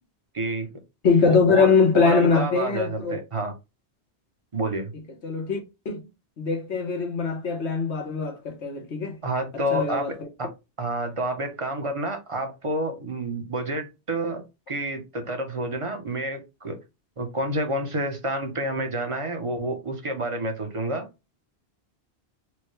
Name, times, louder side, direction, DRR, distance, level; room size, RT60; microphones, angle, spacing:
voice 1, 0.3-0.7 1.2-3.5 4.5-4.9 9.2-10.1 10.4-10.5 10.8-16.8 17.2-21.1, right 1 dB, 35° right, 0.8 m, -29 dB
voice 2, 1.0-3.2 5.2-5.6 5.8-6.0 6.4-9.2 9.7-10.1, left 5 dB, 90° left, 1.4 m, -22 dB
4.4 x 2.2 x 3.1 m
omnidirectional pair, 1.1 m